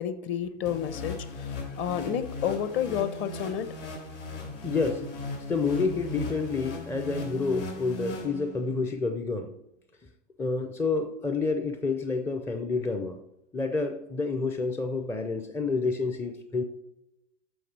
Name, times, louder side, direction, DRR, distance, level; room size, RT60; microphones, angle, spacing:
voice 1, 0.0-3.8, left 9 dB, 30° left, 13 dB, 0.8 m, -30 dB
sound 1, 0.7-8.8, left 3 dB, 75° left, 4.2 m, -38 dB
voice 2, 4.6-5.1 5.5-9.5 10.4-13.2 13.5-16.6, left 4 dB, 5° left, 7 dB, 0.4 m, -29 dB
13.5 x 5.0 x 4.6 m, 0.88 s
figure-of-eight pair, 95°, 37 cm